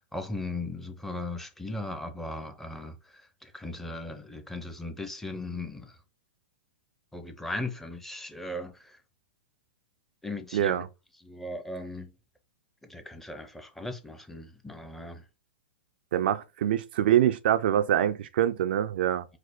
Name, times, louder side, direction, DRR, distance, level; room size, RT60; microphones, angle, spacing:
voice 1, 0.0-6.0 7.1-9.0 10.2-10.8 11.2-12.1 12.8-15.2, left 2 dB, 5° left, 0.7 m, -38 dB
voice 2, 10.5-10.9 16.1-19.2, right 11 dB, 60° right, 0.4 m, -25 dB
4.9 x 2.0 x 4.3 m
hypercardioid pair, 115°, 6 cm